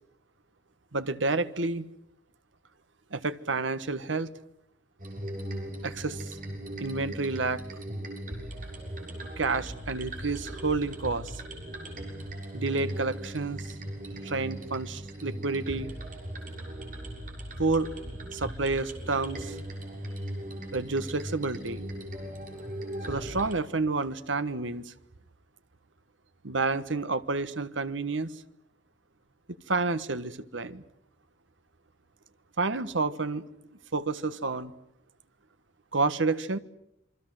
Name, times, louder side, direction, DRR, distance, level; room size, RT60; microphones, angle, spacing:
voice 1, 0.9-1.8 3.1-4.3 5.8-6.3 6.8-7.6 9.4-11.4 12.5-13.7 14.2-15.9 17.6-17.9 18.3-19.6 20.7-21.8 23.1-24.9 26.4-28.3 29.7-30.8 32.6-33.4 33.9-34.7 35.9-36.6, right 3 dB, 80° right, 12 dB, 1.4 m, -29 dB
sound 1, 5.0-23.6, right 1 dB, 45° right, 6.7 m, -38 dB
28.0 x 24.0 x 7.8 m, 0.78 s
head